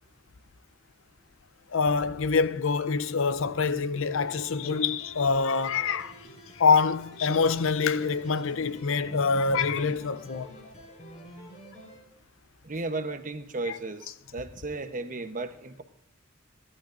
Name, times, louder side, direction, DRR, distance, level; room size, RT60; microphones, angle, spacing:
voice 1, 1.7-6.1 6.6-10.5 13.7-13.8, left 5 dB, 70° left, 0.6 m, -25 dB
sound 1, 4.0-12.0, equal, 35° left, 4.9 m, -47 dB
voice 2, 12.6-15.8, right 3 dB, 40° right, 1.0 m, -34 dB
27.5 x 11.5 x 2.6 m
head